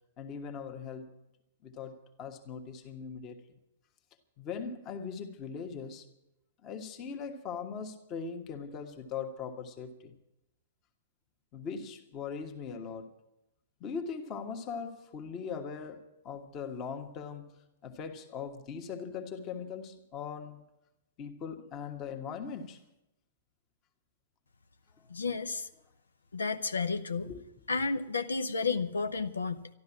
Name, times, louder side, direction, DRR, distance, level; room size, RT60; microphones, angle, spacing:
voice 1, 0.2-1.1 1.6-3.4 4.4-6.1 6.6-10.2 11.5-13.1 13.8-17.5 17.8-20.6 21.2-22.8 27.3-27.4, left 6 dB, 30° left, 1.4 m, -40 dB
voice 2, 25.1-25.7 26.3-27.3 27.7-29.7, left 4 dB, 75° left, 0.7 m, -32 dB
12.5 x 12.5 x 7.2 m
figure-of-eight pair, 110°, 0 cm